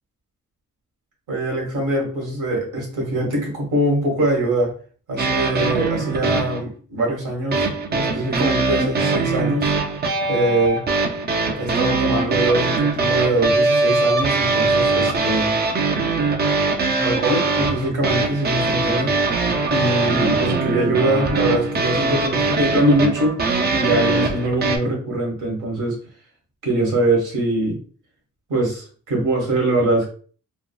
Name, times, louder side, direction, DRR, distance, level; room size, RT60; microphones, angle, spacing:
voice 1, 1.3-4.7 5.1-9.7 10.3-10.8 11.6-15.6 17.0-19.2 19.7-26.0 26.6-27.8 28.5-30.1, right 1 dB, 90° right, -1 dB, 1.4 m, -22 dB
sound 1, 5.2-6.6 7.5-24.8, right 3 dB, 35° right, 0.4 m, -21 dB
3.5 x 2.0 x 2.2 m, 0.42 s
wide cardioid pair, 145°, 31 cm